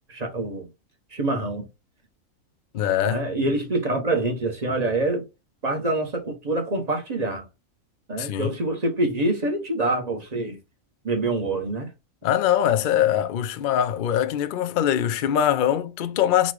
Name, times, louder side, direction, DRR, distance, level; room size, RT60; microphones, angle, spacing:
voice 1, 0.1-0.7 1.1-1.7 3.1-5.2 5.6-7.4 8.1-10.6 11.0-11.9, right 2 dB, 35° right, 0.9 m, -25 dB
voice 2, 2.7-3.2 8.2-8.6 12.2-16.5, left 10 dB, 70° left, 0.4 m, -22 dB
4.2 x 2.3 x 4.6 m
omnidirectional pair, 1.4 m